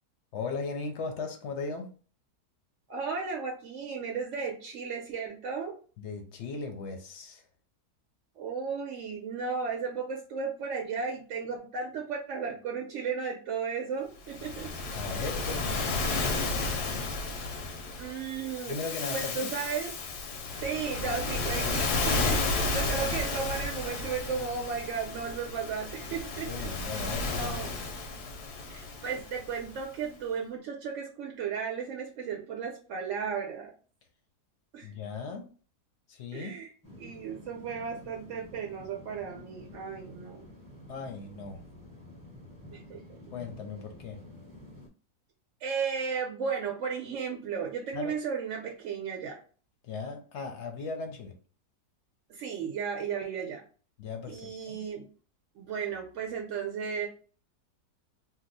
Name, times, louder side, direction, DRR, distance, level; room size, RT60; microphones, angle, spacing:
voice 1, 0.3-1.9 6.0-7.4 14.9-17.1 18.7-19.5 21.4-21.5 22.2-23.0 26.5-27.6 34.8-35.5 36.1-36.6 40.9-41.6 43.3-44.2 47.9-48.2 49.8-51.3 54.0-54.8, left 4 dB, 60° left, 4 dB, 0.7 m, -38 dB
voice 2, 2.9-5.8 8.4-14.7 18.0-18.8 19.1-20.0 20.6-26.7 27.3-27.7 28.7-33.7 34.7-34.9 36.3-36.7 37.0-40.4 42.7-43.0 45.6-49.4 52.3-53.6 54.3-55.1 55.6-57.1, right 6 dB, 65° right, 0 dB, 0.8 m, -34 dB
Waves surf, 14.3-29.8, left 3 dB, 90° left, 1.2 m, -33 dB
sound 1, 36.8-44.9, left 1 dB, 15° right, 0.7 m, -50 dB
2.8 x 2.0 x 3.9 m, 0.39 s
omnidirectional pair, 1.7 m